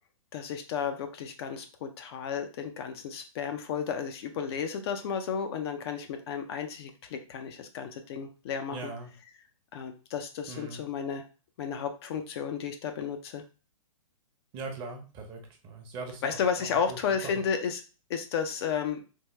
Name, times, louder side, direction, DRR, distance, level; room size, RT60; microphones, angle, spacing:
voice 1, 0.3-8.9 9.7-11.2 11.6-13.4 16.2-17.8 18.1-19.0, left 7 dB, 45° left, 6 dB, 0.5 m, -33 dB
voice 2, 8.7-9.1 10.5-10.8 14.5-16.2 16.6-17.4, right 3 dB, 30° right, 3 dB, 0.8 m, -41 dB
3.5 x 2.2 x 3.1 m, 0.34 s
hypercardioid pair, 130°, 18 cm